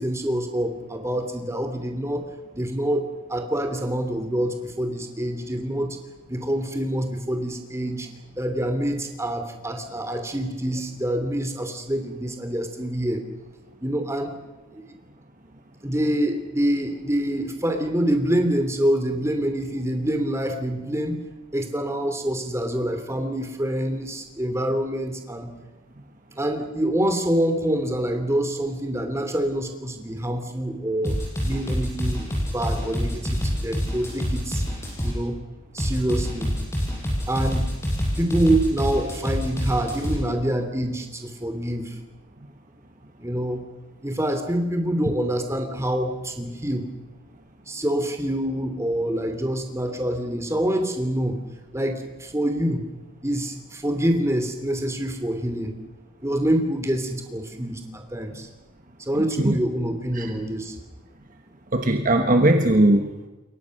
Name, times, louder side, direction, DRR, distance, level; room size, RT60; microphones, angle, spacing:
voice 1, 0.0-2.3 2.5-6.0 6.3-8.1 8.4-13.2 13.8-14.3 14.7-14.8 15.8-21.2 21.5-25.5 26.4-31.2 31.4-32.3 32.5-34.6 35.0-35.4 35.7-36.5 37.3-37.7 38.2-42.0 43.2-43.6 44.0-46.8 47.7-51.4 51.7-52.8 53.2-55.7 56.2-58.5 59.1-60.8, right 1 dB, 15° right, 6 dB, 2.9 m, -26 dB
sound 1, 31.0-35.2 35.8-40.2, equal, 10° left, 6.4 m, -26 dB
voice 2, 61.7-63.3, right 1 dB, 35° right, 5 dB, 1.3 m, -19 dB
28.5 x 22.5 x 6.5 m, 1.1 s
head